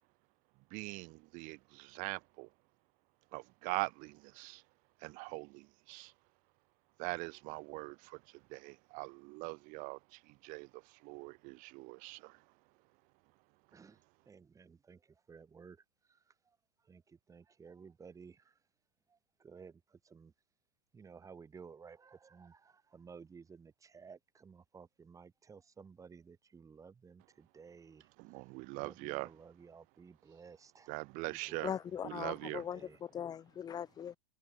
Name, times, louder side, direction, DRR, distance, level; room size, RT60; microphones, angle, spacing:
voice 1, 0.7-2.5 3.3-4.6 5.0-6.1 7.0-12.4 28.2-29.3 30.9-31.7 32.0-32.6, right 28 dB, 45° right, 1.3 m, -42 dB
voice 2, 13.7-18.6 19.1-20.3 20.9-31.0 31.3-33.0, right 5 dB, 15° right, 6.9 m, -56 dB
voice 3, 31.6-34.2, left 9 dB, 20° left, 0.7 m, -40 dB
hypercardioid pair, 115°, 19 cm